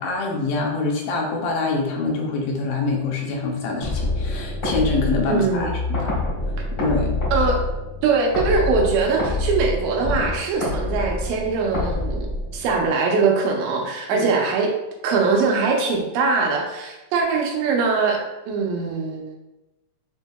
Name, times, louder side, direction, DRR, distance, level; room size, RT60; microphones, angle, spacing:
voice 1, 0.0-6.0 6.8-7.1 14.1-14.3, left 3 dB, 85° left, 0 dB, 2.4 m, -25 dB
sound 1, 3.8-12.9, left 2 dB, 55° left, 0.8 m, -26 dB
voice 2, 5.3-5.7 7.3-7.6 8.0-12.3 12.5-14.7 15.0-18.2 18.5-19.3, right 4 dB, 85° right, 0 dB, 2.5 m, -22 dB
6.4 x 2.7 x 2.2 m, 1.0 s
omnidirectional pair, 3.9 m